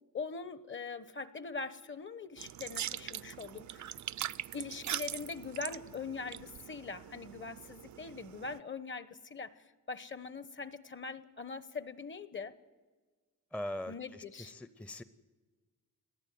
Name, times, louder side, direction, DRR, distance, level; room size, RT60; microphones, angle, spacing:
voice 1, 0.1-3.9 4.5-12.5 13.9-14.5, left 4 dB, 35° left, 15 dB, 1.0 m, -42 dB
sound 1, 2.4-8.6, right 10 dB, 65° right, 0.6 m, -42 dB
voice 2, 13.5-15.0, left 1 dB, 5° left, 13 dB, 0.6 m, -41 dB
21.0 x 14.5 x 9.3 m, 1.3 s
wide cardioid pair, 125°, 32 cm